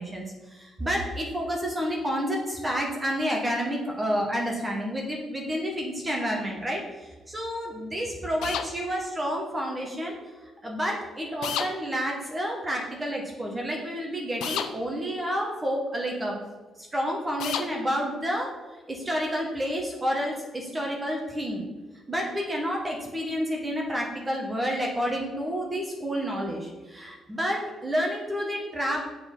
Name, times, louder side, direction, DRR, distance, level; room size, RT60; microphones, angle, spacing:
voice 1, 0.0-10.2 10.4-16.4 16.8-18.5 18.9-21.6 22.1-29.0, equal, 20° right, -1 dB, 1.5 m, -30 dB
sound 1, 8.4-8.7 11.4-11.7 14.4-14.7 17.4-17.7, left 8 dB, 85° left, 0.6 m, -29 dB
6.9 x 4.4 x 5.5 m, 1.2 s
cardioid pair, 90°, 0 cm